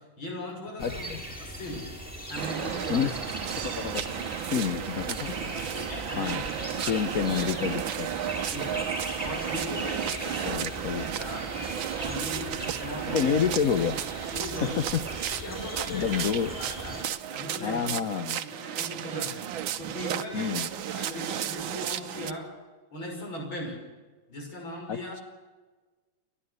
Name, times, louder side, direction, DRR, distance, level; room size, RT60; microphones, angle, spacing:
voice 1, 0.2-1.1 1.4-1.9 2.3-3.1 5.2-7.3 8.5-8.9 9.2-11.5 11.9-13.4 14.3-14.9 15.3-16.3 16.6-17.0 17.3-17.9 18.3-19.4 19.8-22.5 22.9-23.8 24.3-25.1, left 1 dB, 75° left, 0 dB, 7.2 m, -38 dB
voice 2, 0.8-1.2 2.9-5.5 6.2-6.4 6.9-8.1 10.5-11.1 13.1-14.0 14.8-15.0 15.9-16.5 17.6-18.4 20.3-20.7 24.9-25.2, left 7 dB, 55° left, 9 dB, 1.1 m, -29 dB
sound 1, 0.8-17.0, equal, 5° left, 5.9 m, -39 dB
sound 2, 2.4-22.3, right 10 dB, 75° right, 1.6 m, -34 dB
29.5 x 12.0 x 8.1 m, 1.3 s
omnidirectional pair, 2.2 m